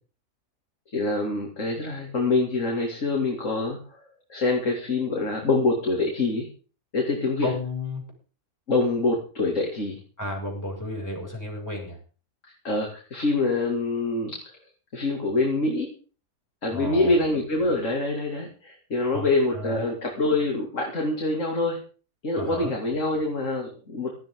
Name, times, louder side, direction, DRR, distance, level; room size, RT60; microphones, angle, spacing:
voice 1, 0.9-4.0 4.3-6.5 6.9-7.5 8.7-10.0 12.6-14.6 14.9-15.9 16.6-21.8 22.2-24.2, left 2 dB, 55° left, 0 dB, 3.3 m, -25 dB
voice 2, 7.4-8.0 10.2-12.0 16.7-17.2 19.1-19.3 19.5-19.8 22.4-22.7, left 2 dB, 10° left, -1 dB, 6.6 m, -32 dB
17.5 x 13.5 x 3.9 m, 0.37 s
omnidirectional pair, 1.6 m